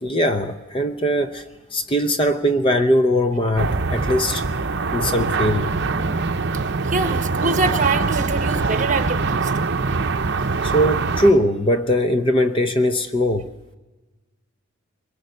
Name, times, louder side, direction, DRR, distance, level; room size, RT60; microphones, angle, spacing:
voice 1, 0.0-4.4 4.9-5.7 10.5-13.5, equal, 25° left, 0.7 m, -20 dB
sound 1, 3.6-11.3, right 4 dB, 55° right, 0.7 m, -23 dB
voice 2, 6.8-9.8, right 3 dB, 35° right, 1.2 m, -24 dB
23.0 x 22.0 x 6.6 m
head